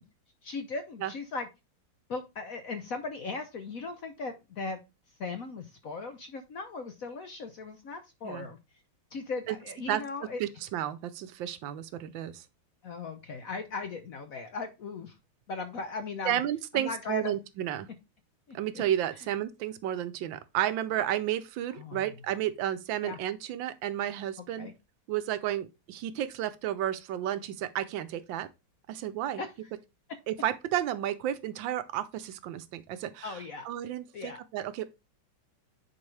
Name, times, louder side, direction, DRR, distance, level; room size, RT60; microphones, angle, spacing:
voice 1, 0.4-1.5 2.1-4.8 5.2-8.6 9.1-10.4 12.8-15.2 15.5-16.4 16.7-17.4 18.5-18.8 21.8-22.1 23.0-23.2 24.6-24.7 29.4-29.5 33.2-33.7 34.1-34.4, left 4 dB, 60° left, 0.9 m, -38 dB
voice 2, 10.4-12.4 16.2-17.9 18.5-24.7 25.1-28.5 28.9-29.4 30.3-33.4 33.6-34.8, right 12 dB, 75° right, 1.3 m, -32 dB
9.7 x 4.4 x 3.2 m
omnidirectional pair, 2.2 m